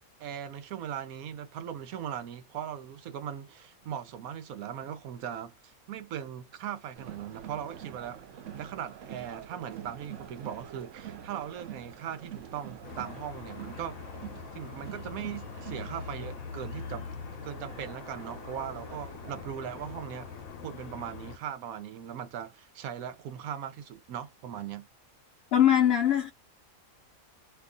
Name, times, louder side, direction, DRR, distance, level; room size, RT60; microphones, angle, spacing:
voice 1, 0.2-8.3 8.5-14.0 14.5-17.1 17.4-20.3 20.6-24.9, right 9 dB, 90° right, 1.1 m, -39 dB
Crowd, 6.9-20.5, right 9 dB, 65° right, 1.0 m, -46 dB
sound 1, 12.8-21.4, left 6 dB, 80° left, 1.1 m, -43 dB
voice 2, 25.5-26.3, left 10 dB, 60° left, 0.7 m, -21 dB
2.7 x 2.5 x 3.7 m
omnidirectional pair, 1.5 m